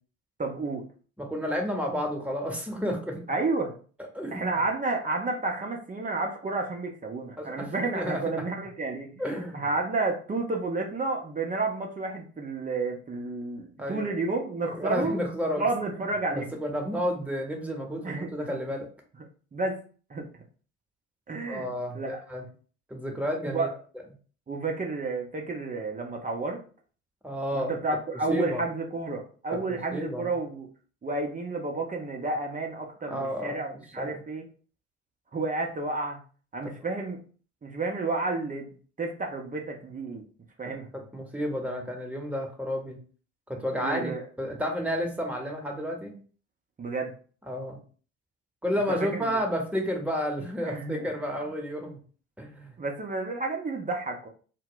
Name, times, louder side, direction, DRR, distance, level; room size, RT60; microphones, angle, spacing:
voice 1, 0.4-0.8 3.3-3.7 4.3-9.2 9.5-15.2 15.6-16.6 18.0-18.3 19.5-19.8 20.1-20.3 21.3-21.6 21.9-22.2 23.5-23.7 24.5-26.6 27.5-30.7 31.0-34.5 35.3-36.2 36.5-37.2 37.6-38.7 39.0-40.2 40.6-40.9 43.8-44.2 46.8-47.1 49.0-49.3 50.6-51.1 52.8-54.3, right 3 dB, 20° right, 2 dB, 0.6 m, -31 dB
voice 2, 1.2-3.1 4.1-4.6 7.4-8.2 9.2-9.6 13.8-14.1 14.6-15.7 15.9-16.0 16.3-18.9 21.4-22.4 22.9-23.7 27.2-27.7 28.3-28.6 29.7-30.3 33.1-33.6 34.0-34.2 36.6-36.7 40.9-43.0 43.5-46.1 47.5-47.8 48.6-52.0 52.4-52.7, equal, 5° right, 1 dB, 0.9 m, -31 dB
2.1 x 2.1 x 3.7 m, 0.40 s
hypercardioid pair, 55°, 36 cm